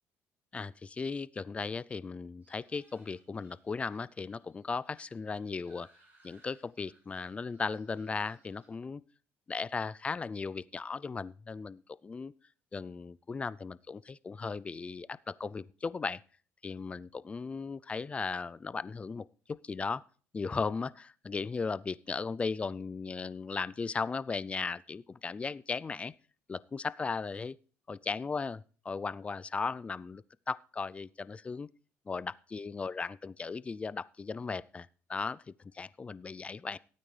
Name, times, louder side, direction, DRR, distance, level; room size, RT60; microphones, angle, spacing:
voice 1, 0.5-5.9 6.2-9.0 9.5-12.3 12.7-16.2 16.6-20.0 20.3-26.1 26.5-27.6 27.9-31.7 32.1-36.8, left 4 dB, 25° left, 19 dB, 0.4 m, -37 dB
sound 1, 2.4-8.7, right 3 dB, 35° right, 4.5 m, -66 dB
17.0 x 8.9 x 3.3 m, 0.41 s
cardioid pair, 115°, 5 cm